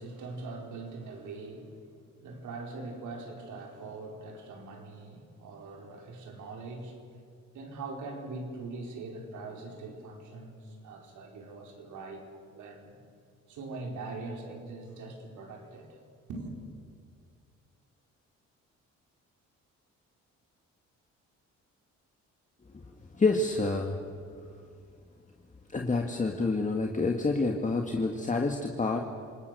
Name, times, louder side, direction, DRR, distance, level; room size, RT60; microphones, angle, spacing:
voice 1, 0.0-7.0 7.5-13.0 13.5-16.0 16.3-16.6, right 3 dB, 80° right, 2 dB, 4.8 m, -42 dB
voice 2, 23.1-24.0 25.7-29.0, left 3 dB, 25° left, 2 dB, 1.9 m, -28 dB
27.5 x 19.5 x 6.9 m, 2.3 s
cardioid pair, 90°, 30 cm